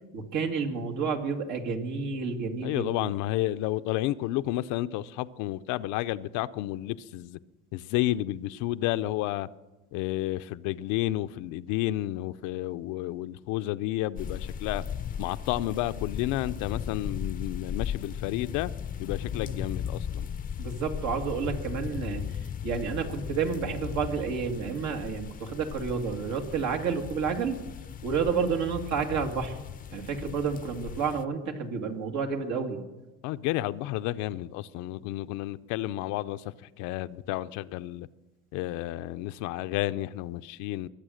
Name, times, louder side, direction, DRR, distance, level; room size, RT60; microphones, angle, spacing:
voice 1, 0.1-3.1 19.4-19.6 20.6-22.2 22.6-27.6 28.0-29.6 29.9-32.8, right 5 dB, 70° right, 2.4 m, -30 dB
voice 2, 2.6-7.4 7.7-9.5 9.9-14.8 15.2-18.7 19.0-20.3 33.2-38.1 38.5-40.9, left 15 dB, 80° left, 0.6 m, -31 dB
sound 1, 14.2-31.2, left 8 dB, 30° left, 0.6 m, -37 dB
22.5 x 8.3 x 6.5 m
cardioid pair, 110°, 30 cm